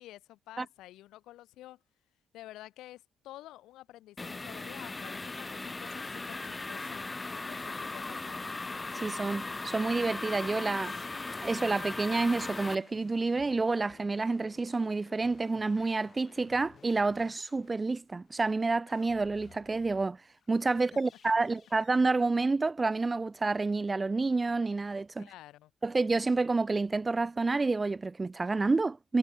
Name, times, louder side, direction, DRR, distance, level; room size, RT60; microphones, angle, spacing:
voice 1, 0.0-1.8 2.3-7.0 7.4-8.5 21.4-21.5 25.2-25.7, left 15 dB, 90° left, 2.3 m, -50 dB
sound 1, 4.2-12.8, left 3 dB, 20° left, 0.4 m, -38 dB
voice 2, 8.9-10.9 11.4-20.2 20.5-25.3 25.8-29.2, right 3 dB, 25° right, 0.7 m, -29 dB
sound 2, 10.8-20.1 20.4-22.1, left 7 dB, 50° left, 7.1 m, -58 dB
cardioid pair, 90°, 0 cm